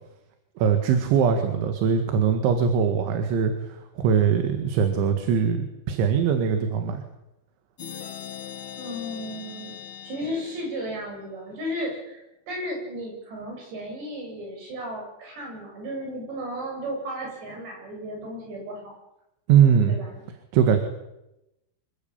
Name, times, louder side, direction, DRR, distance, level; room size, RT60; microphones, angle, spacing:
voice 1, 0.6-7.0 19.5-20.0 20.5-20.8, right 7 dB, 80° right, 6 dB, 4.3 m, -21 dB
sound 1, 7.8-11.4, left 9 dB, 35° left, 2.5 m, -40 dB
voice 2, 8.8-9.8 10.0-18.9 19.9-20.2, equal, 65° right, 1 dB, 10.0 m, -34 dB
26.5 x 21.5 x 8.9 m, 0.92 s
omnidirectional pair, 5.3 m